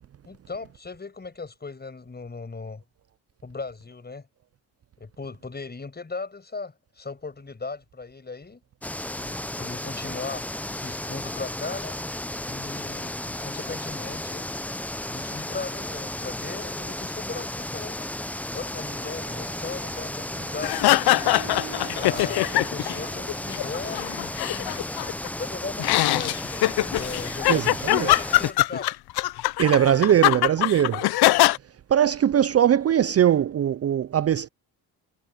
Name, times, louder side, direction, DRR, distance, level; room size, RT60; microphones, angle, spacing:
voice 1, 0.2-2.8 3.4-4.3 5.0-8.6 9.1-12.0 12.4-14.5 15.1-18.1 18.5-21.1 22.0-24.9 25.4-28.9, left 4 dB, 25° left, 5.9 m, -37 dB
sound 1, 8.8-28.5, left 1 dB, 5° left, 0.5 m, -34 dB
Harp, 18.7-24.0, right 15 dB, 85° right, 3.3 m, -44 dB
sound 2, 20.6-23.0 23.3-25.3 25.8-31.6, left 17 dB, 70° left, 0.8 m, -22 dB
voice 2, 27.5-28.1 29.6-31.1 31.9-34.5, right 10 dB, 35° right, 0.6 m, -21 dB
supercardioid pair, 75°, 40 cm